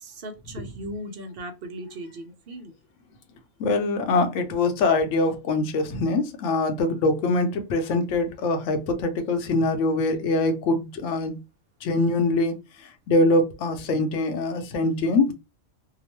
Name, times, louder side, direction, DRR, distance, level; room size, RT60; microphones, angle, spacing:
voice 1, 0.0-2.7, right 1 dB, 55° right, 0.7 m, -38 dB
voice 2, 3.6-11.4 11.8-12.6 13.1-15.3, left 2 dB, 70° left, 1.0 m, -23 dB
2.8 x 2.1 x 2.9 m
omnidirectional pair, 1.4 m